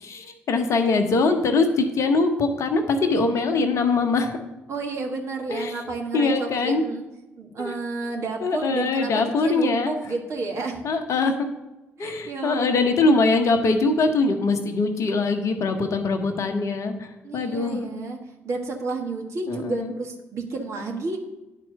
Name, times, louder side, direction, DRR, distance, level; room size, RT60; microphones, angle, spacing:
voice 1, 0.0-4.4 5.5-5.8 6.1-6.8 7.6-7.8 8.4-9.9 10.8-11.5 12.0-17.8 19.5-19.9, left 3 dB, 50° left, 7 dB, 1.0 m, -22 dB
voice 2, 4.7-7.0 7.4-10.8 12.0-13.3 17.2-18.2 18.4-21.2, right 3 dB, 45° right, 1 dB, 1.6 m, -31 dB
10.0 x 4.5 x 6.6 m, 1.0 s
figure-of-eight pair, 45°, 7 cm